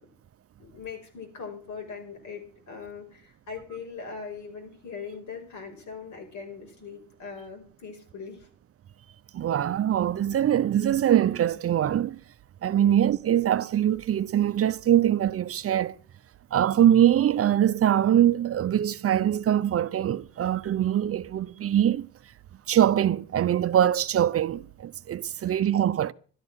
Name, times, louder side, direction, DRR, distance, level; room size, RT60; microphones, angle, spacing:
voice 1, 0.6-8.5 12.7-12.9 25.4-25.6, left 5 dB, 70° left, 5.3 m, -41 dB
voice 2, 9.3-12.2 12.6-15.9 16.5-22.1 22.7-26.1, right 11 dB, 50° right, 0.7 m, -23 dB
12.5 x 11.0 x 6.4 m
cardioid pair, 90°, 30 cm